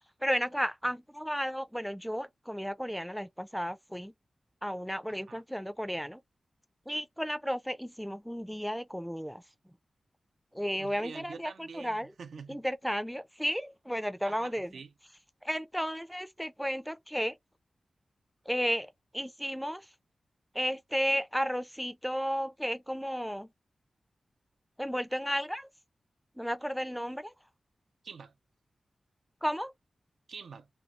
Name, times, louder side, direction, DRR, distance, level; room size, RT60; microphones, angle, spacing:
voice 1, 0.2-4.1 4.6-6.2 6.9-9.4 10.5-12.1 12.5-14.7 15.4-17.4 18.5-18.9 19.1-19.9 20.5-23.5 24.8-25.7 26.4-27.3 29.4-29.7, equal, ahead, 0.4 m, -33 dB
voice 2, 5.1-5.4 10.8-12.6 14.2-14.9 28.0-28.3 30.3-30.7, right 5 dB, 90° right, 0.4 m, -46 dB
3.1 x 2.3 x 2.4 m
cardioid pair, 70°, 0 cm